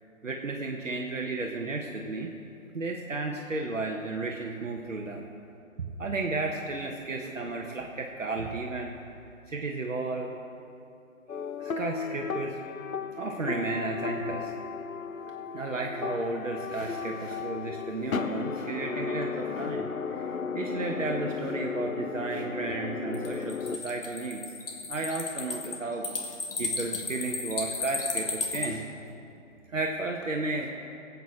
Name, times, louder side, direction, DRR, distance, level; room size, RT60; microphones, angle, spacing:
voice 1, 0.2-2.3 2.7-5.2 5.8-8.9 9.5-10.3 11.6-12.6 13.2-14.5 15.5-24.4 24.9-26.0 26.6-28.8 29.7-30.7, right 3 dB, 65° right, 1 dB, 1.2 m, -33 dB
sound 1, 11.3-23.8, left 5 dB, 75° left, 0.7 m, -35 dB
sound 2, 23.1-28.7, left 4 dB, 40° left, 1.3 m, -33 dB
22.0 x 8.3 x 3.6 m, 2.6 s
figure-of-eight pair, 150°, 42 cm